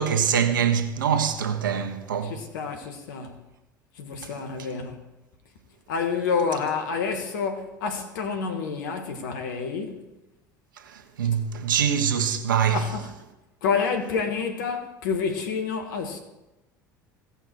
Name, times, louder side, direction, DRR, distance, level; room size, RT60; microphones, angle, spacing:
voice 1, 0.0-2.4 10.8-12.8, right 8 dB, 85° right, 1.1 m, -24 dB
voice 2, 2.2-3.4 4.0-5.0 5.9-10.0 12.7-13.1 13.6-16.2, left 5 dB, 75° left, 1.7 m, -28 dB
16.5 x 5.7 x 4.6 m
hypercardioid pair, 70°, 10 cm